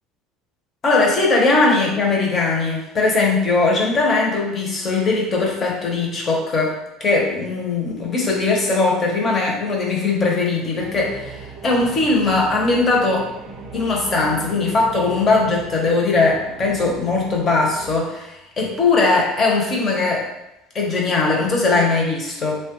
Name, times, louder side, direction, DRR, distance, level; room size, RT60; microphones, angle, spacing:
voice 1, 0.8-13.3 13.7-20.3 20.7-22.6, left 3 dB, 30° left, -1 dB, 0.7 m, -20 dB
sound 1, 10.8-18.0, right 3 dB, 30° right, 0.6 m, -38 dB
3.1 x 2.2 x 2.9 m, 0.91 s
cardioid pair, 135°, 0 cm